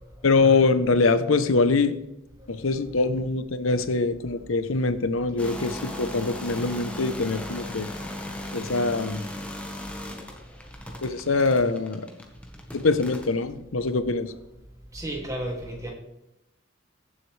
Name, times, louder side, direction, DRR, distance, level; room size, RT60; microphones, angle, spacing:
voice 1, 0.2-1.9 2.5-7.9 8.5-9.2 11.0-12.1 12.7-14.3, left 3 dB, 80° left, 12 dB, 0.8 m, -23 dB
sound 1, 5.4-13.4, left 1 dB, 5° left, 1.2 m, -37 dB
voice 2, 14.9-15.9, right 1 dB, 15° right, -1 dB, 2.4 m, -32 dB
15.5 x 7.7 x 3.3 m, 0.89 s
head